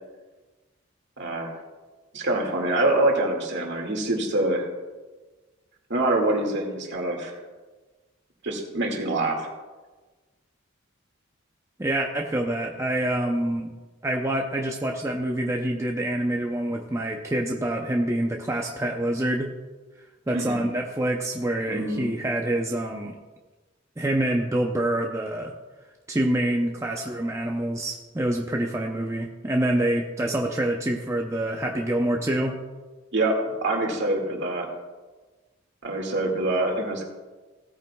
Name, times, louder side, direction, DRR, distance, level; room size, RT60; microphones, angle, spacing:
voice 1, 1.2-1.5 2.1-4.7 5.9-7.3 8.4-9.5 20.3-20.6 21.7-22.1 33.1-34.7 35.8-37.0, right 2 dB, 55° right, 1 dB, 2.0 m, -25 dB
voice 2, 11.8-13.7 14.0-19.5 20.3-23.2 24.0-25.5 26.1-32.6, right 1 dB, 15° right, 1 dB, 0.6 m, -26 dB
17.0 x 9.0 x 2.3 m, 1.3 s
head